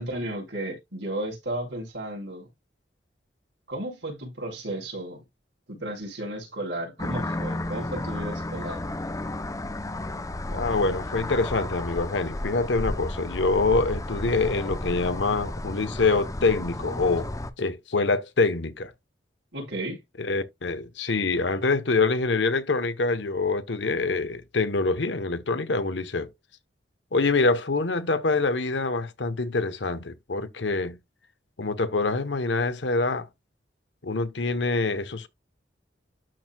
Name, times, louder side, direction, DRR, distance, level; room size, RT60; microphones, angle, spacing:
voice 1, 0.0-2.5 3.7-5.2 5.7-8.8 19.5-20.0, right 1 dB, 80° right, 4.9 m, -34 dB
sound 1, 7.0-17.5, left 1 dB, 20° left, 0.6 m, -33 dB
voice 2, 10.5-17.3 17.6-18.9 20.2-26.3 27.1-31.0 31.6-33.3 34.0-35.3, left 3 dB, 80° left, 1.0 m, -25 dB
12.5 x 4.6 x 2.3 m
head